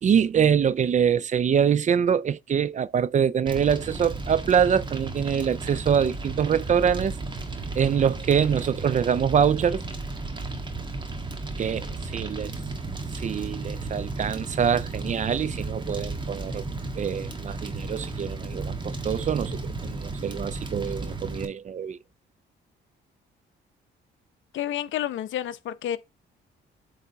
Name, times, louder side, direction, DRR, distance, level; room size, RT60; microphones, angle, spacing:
voice 1, 0.0-7.2 7.8-9.8 11.6-11.9 12.1-12.5 13.1-16.6 17.0-22.0, right 7 dB, 40° right, 0.4 m, -24 dB
Fire, 3.5-21.5, right 3 dB, 25° right, 1.5 m, -34 dB
voice 2, 24.5-26.0, left 11 dB, 75° left, 0.7 m, -30 dB
8.0 x 3.6 x 4.0 m
cardioid pair, 90°, 20 cm